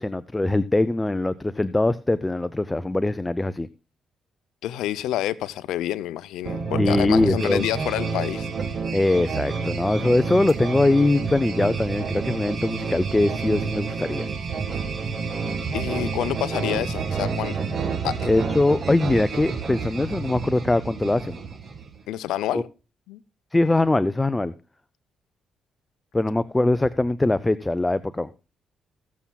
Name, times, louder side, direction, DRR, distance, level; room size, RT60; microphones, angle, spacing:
voice 1, 0.0-3.7 6.8-7.7 8.9-14.3 18.3-21.4 22.5-22.6 23.5-24.5 26.1-28.3, left 2 dB, 15° left, 0.4 m, -22 dB
voice 2, 4.6-8.5 15.7-17.6 18.0-18.3 22.1-22.7 23.1-23.2, left 13 dB, 85° left, 0.5 m, -28 dB
sound 1, 6.4-22.0, right 5 dB, 45° right, 1.6 m, -29 dB
20.0 x 7.2 x 2.2 m
cardioid pair, 90°, 0 cm